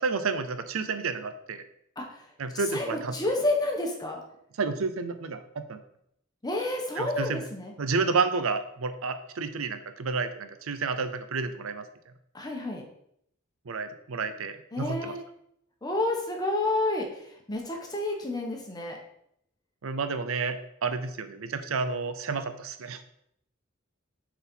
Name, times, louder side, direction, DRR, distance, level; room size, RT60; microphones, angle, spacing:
voice 1, 0.0-1.6 2.4-3.1 4.6-5.8 7.0-7.4 7.8-11.9 13.7-15.1 19.8-23.0, right 4 dB, 75° right, 10 dB, 0.6 m, -30 dB
voice 2, 2.0-2.3 2.5-4.2 6.4-7.7 12.3-12.8 14.7-15.2 15.8-19.0, left 2 dB, 20° left, 1 dB, 1.2 m, -30 dB
6.7 x 4.1 x 4.5 m, 0.73 s
head